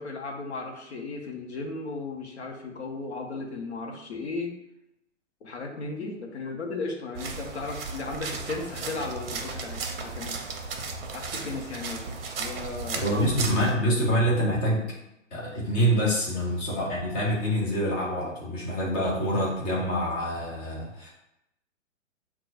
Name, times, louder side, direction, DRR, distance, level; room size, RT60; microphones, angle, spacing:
voice 1, 0.0-4.5 5.4-10.4 11.1-12.1 12.4-13.4, left 3 dB, 60° left, 1 dB, 0.9 m, -35 dB
sound 1, 7.1-13.7, right 4 dB, 50° right, 0.6 m, -35 dB
voice 2, 13.0-15.0 15.3-21.1, equal, 10° left, -4 dB, 0.4 m, -26 dB
5.7 x 2.3 x 2.5 m, 0.84 s
figure-of-eight pair, 120°, 38 cm